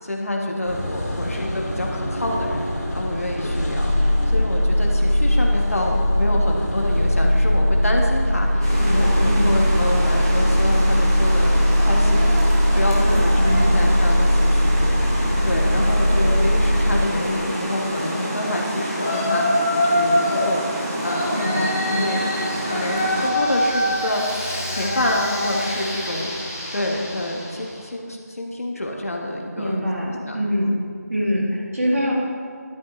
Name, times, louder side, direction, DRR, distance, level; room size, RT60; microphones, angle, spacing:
voice 1, 0.0-2.6 2.9-12.5 12.7-21.7 21.9-22.3 22.7-24.2 24.7-29.7 30.1-30.4 30.6-30.8, left 1 dB, 55° left, 0 dB, 1.6 m, -27 dB
sound 1, 0.7-17.0, left 1 dB, 80° left, 2.7 m, -20 dB
sound 2, 8.6-23.3, right 1 dB, 15° right, 0.9 m, -28 dB
voice 2, 8.8-9.6 13.0-13.8 21.3-22.1 29.6-30.8 31.1-32.1, equal, 55° right, -3 dB, 2.7 m, -24 dB
Yell, 18.9-20.5 21.0-27.7, left 1 dB, 10° left, 0.5 m, -25 dB
12.0 x 8.5 x 3.3 m, 2.1 s
figure-of-eight pair, 175°, 9 cm